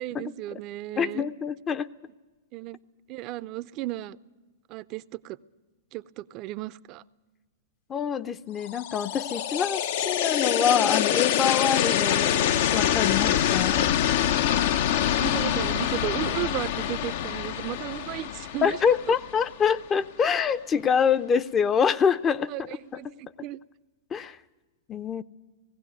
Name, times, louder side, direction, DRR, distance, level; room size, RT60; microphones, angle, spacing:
voice 1, 0.0-1.3 2.5-2.8 3.1-4.2 4.7-5.4 5.9-7.0 15.2-18.8 22.5-23.6, right 16 dB, 40° right, 17 dB, 0.6 m, -34 dB
voice 2, 1.0-1.9 7.9-12.3 12.7-13.8 18.6-22.5 22.9-23.1 24.1-24.4 24.9-25.2, left 7 dB, 25° left, 13 dB, 0.6 m, -25 dB
sound 1, 8.7-19.7, left 10 dB, 60° left, 0.7 m, -25 dB
19.0 x 16.0 x 9.2 m, 1.2 s
hypercardioid pair, 115°, 0 cm